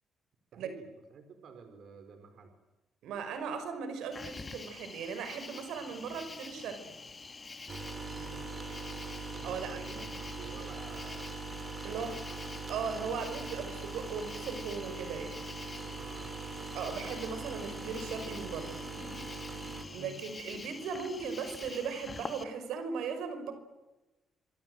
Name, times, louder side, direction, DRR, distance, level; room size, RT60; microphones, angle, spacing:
voice 1, 0.5-2.5 8.1-8.5 9.3-11.3 11.9-13.6 16.0-16.3 19.9-20.2, right 5 dB, 65° right, 7 dB, 4.7 m, -51 dB
voice 2, 3.0-6.9 9.4-10.0 11.8-12.2 12.7-15.4 16.7-18.8 19.9-23.5, right 6 dB, 85° right, 9 dB, 5.5 m, -38 dB
Cricket, 4.1-22.4, left 4 dB, 30° left, 1.9 m, -47 dB
sound 1, 7.7-19.8, right 4 dB, 40° right, 5.5 m, -42 dB
26.5 x 24.0 x 7.9 m, 1.1 s
cardioid pair, 90°, 0 cm